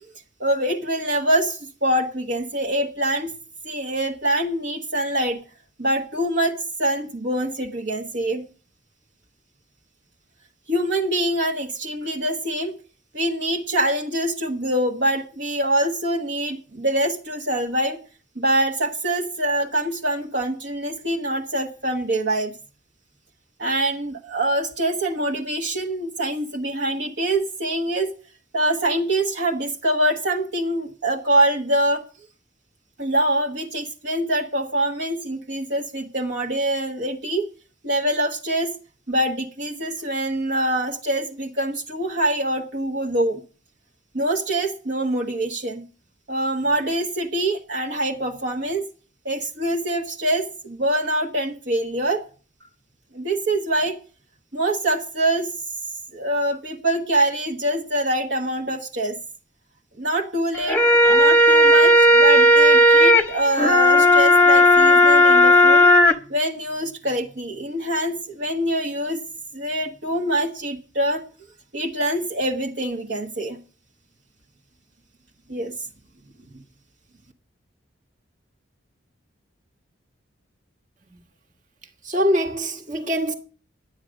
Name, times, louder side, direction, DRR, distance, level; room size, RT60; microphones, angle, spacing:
voice 1, 0.4-3.3 3.6-5.4 5.8-8.4 10.7-12.7 13.1-18.0 18.3-22.5 23.6-28.1 28.5-32.0 33.0-37.4 37.8-38.7 39.1-43.4 44.1-45.8 46.3-48.9 49.2-52.2 53.1-53.9 54.5-55.5 56.1-59.2 60.0-60.8 61.1-65.9 66.3-69.2 69.5-71.2 71.7-73.6 75.5-75.7, right 1 dB, 55° right, 1.4 m, -24 dB
sound 1, 60.5-66.1, equal, 10° left, 1.0 m, -14 dB
voice 2, 82.0-83.3, equal, 40° right, 1.6 m, -23 dB
11.5 x 9.2 x 6.3 m
head